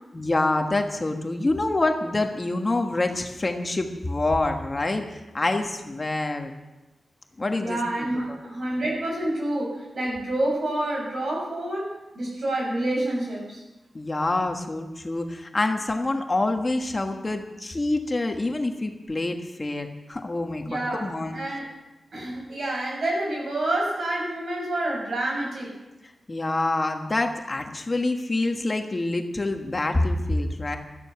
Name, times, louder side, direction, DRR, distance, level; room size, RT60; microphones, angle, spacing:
voice 1, 0.1-6.5 7.4-8.4 13.9-21.4 26.3-30.8, left 2 dB, 25° left, 4 dB, 1.3 m, -26 dB
voice 2, 7.6-13.6 20.7-21.7 22.1-25.8, right 1 dB, 60° right, -1 dB, 7.0 m, -28 dB
17.0 x 13.0 x 5.8 m, 1.1 s
wide cardioid pair, 120°, 0 cm